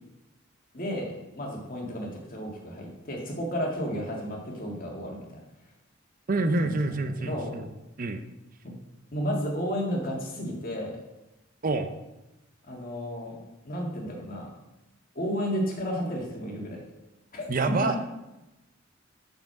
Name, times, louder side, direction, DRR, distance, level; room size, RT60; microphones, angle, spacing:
voice 1, 0.7-5.3 6.6-6.7 7.0-7.6 9.1-11.0 12.6-13.4 13.6-14.5 15.1-16.8 17.3-17.5 17.8-18.0, equal, 45° left, -1 dB, 2.2 m, -32 dB
voice 2, 6.3-7.7 8.0-8.2 11.6-12.0 17.5-18.0, right 2 dB, 45° right, 8 dB, 0.6 m, -27 dB
6.6 x 6.0 x 6.0 m, 0.97 s
head